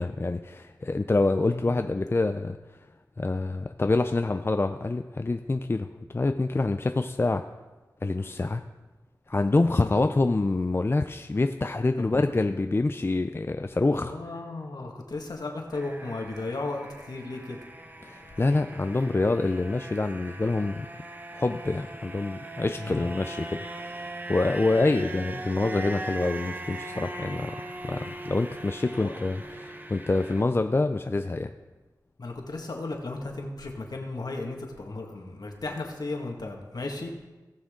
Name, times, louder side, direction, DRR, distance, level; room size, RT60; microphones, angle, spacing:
voice 1, 0.0-2.6 3.2-7.5 8.0-8.6 9.3-14.1 18.0-20.9 21.3-27.5 27.8-31.5, left 2 dB, 30° left, 7 dB, 0.4 m, -26 dB
voice 2, 1.4-1.8 9.8-10.1 12.0-12.3 13.9-17.6 18.3-18.4 22.8-23.1 28.9-29.1 32.2-37.1, left 2 dB, 65° left, 1 dB, 1.8 m, -35 dB
sound 1, 15.7-30.4, right 1 dB, 25° right, 0.9 m, -40 dB
18.0 x 6.3 x 3.8 m, 1.2 s
cardioid pair, 45°, 8 cm